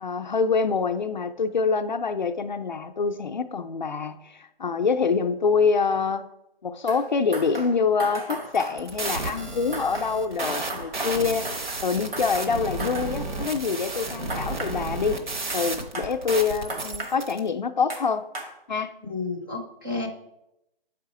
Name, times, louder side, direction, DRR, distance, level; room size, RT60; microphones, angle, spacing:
voice 1, 0.0-6.3 6.6-15.2 15.5-18.3 18.7-18.9, left 5 dB, 50° left, 8 dB, 0.4 m, -25 dB
sound 1, 6.9-7.1 7.3-9.5 9.7-11.9 12.1-13.1 14.3-14.7 15.5-15.6 15.9-16.1 16.7-17.1 17.9-18.0 18.4-18.5, right 2 dB, 75° right, 2.0 m, -36 dB
sound 2, 8.4-17.4, right 2 dB, 55° right, 1.0 m, -32 dB
voice 2, 19.0-20.1, left 3 dB, 20° right, 0 dB, 0.6 m, -31 dB
7.3 x 4.9 x 4.7 m, 0.86 s
hypercardioid pair, 180°, 29 cm